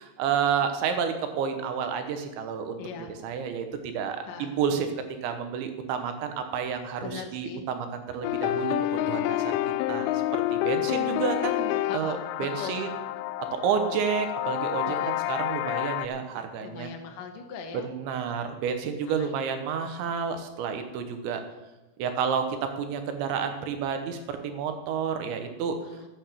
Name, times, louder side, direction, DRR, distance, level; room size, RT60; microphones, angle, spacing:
voice 1, 0.0-2.8 3.1-4.9 5.2-8.7 9.1-9.6 9.9-13.0 13.6-16.9 17.7-21.4 22.0-25.8, right 7 dB, 75° right, 7 dB, 3.3 m, -30 dB
voice 2, 2.8-3.1 4.3-4.5 7.0-7.6 11.9-12.9 14.8-15.2 16.6-17.9 19.0-19.3 25.8-26.1, left 7 dB, 70° left, 2 dB, 2.1 m, -39 dB
sound 1, 8.2-16.1, left 14 dB, 85° left, 3.0 m, -28 dB
12.0 x 9.1 x 6.9 m, 1.0 s
omnidirectional pair, 5.7 m